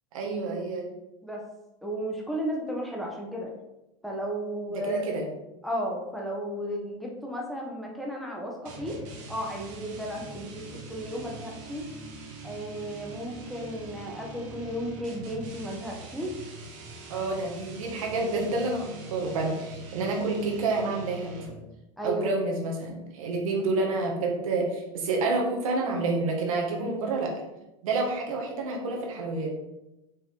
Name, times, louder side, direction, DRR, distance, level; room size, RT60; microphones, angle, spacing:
voice 1, 0.1-0.9 4.7-5.2 17.1-21.6 22.0-27.4 27.8-29.5, right 3 dB, 85° right, 0 dB, 1.8 m, -29 dB
voice 2, 1.8-3.5 4.0-5.0 5.6-9.0 9.3-11.9 12.4-16.3 22.0-22.3, equal, ahead, -2 dB, 1.3 m, -34 dB
sound 1, 8.7-21.7, right 3 dB, 50° right, 1.8 m, -43 dB
5.4 x 5.3 x 4.0 m, 0.95 s
supercardioid pair, 130°, 17 cm